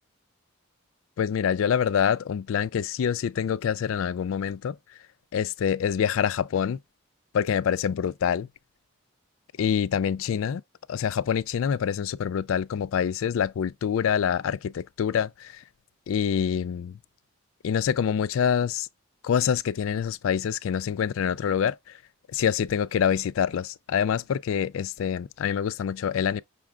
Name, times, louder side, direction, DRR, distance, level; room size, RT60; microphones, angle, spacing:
voice 1, 1.2-4.8 5.3-6.8 7.3-8.5 9.6-10.6 10.9-15.6 16.1-17.0 17.6-18.9 19.2-22.0 22.3-26.4, left 8 dB, 70° left, 0.3 m, -26 dB
6.0 x 2.3 x 3.6 m
head